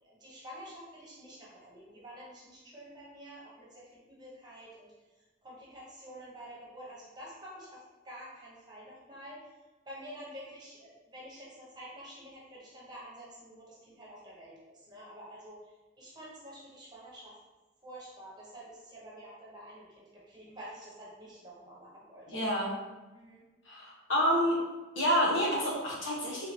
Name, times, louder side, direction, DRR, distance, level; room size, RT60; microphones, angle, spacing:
voice 1, 0.0-4.9 5.4-9.5 9.8-17.4 17.8-22.4 23.1-23.4, equal, 20° right, -6 dB, 1.1 m, -49 dB
voice 2, 22.3-22.7 23.6-24.5 24.9-26.5, equal, 75° left, -5 dB, 1.3 m, -28 dB
3.7 x 3.4 x 2.9 m, 1.2 s
head